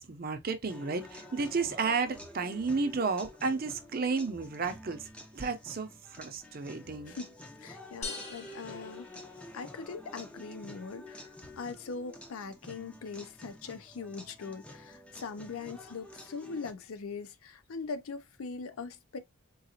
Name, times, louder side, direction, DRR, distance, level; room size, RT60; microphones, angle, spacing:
voice 1, 0.0-7.1, right 4 dB, 40° right, 0.5 m, -32 dB
sound 1, 0.7-16.7, left 1 dB, 5° left, 0.4 m, -50 dB
voice 2, 7.1-9.1 9.5-19.2, left 4 dB, 75° left, 0.5 m, -41 dB
sound 2, 8.0-9.9, left 4 dB, 30° left, 0.8 m, -43 dB
3.9 x 2.4 x 2.7 m
head